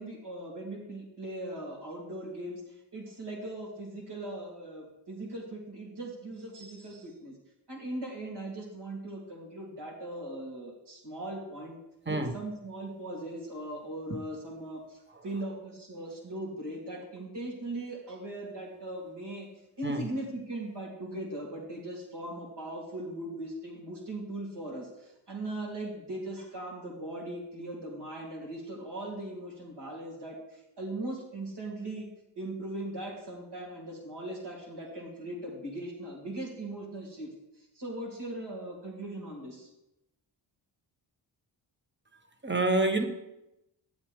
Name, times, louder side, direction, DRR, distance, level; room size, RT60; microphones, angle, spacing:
voice 1, 0.0-7.3 7.7-11.8 12.1-19.5 19.8-32.1 32.4-39.7, right 1 dB, 55° right, -2 dB, 3.6 m, -39 dB
voice 2, 42.4-43.0, right 2 dB, 20° right, 6 dB, 1.3 m, -27 dB
11.0 x 8.2 x 3.7 m, 0.89 s
supercardioid pair, 50°, 49 cm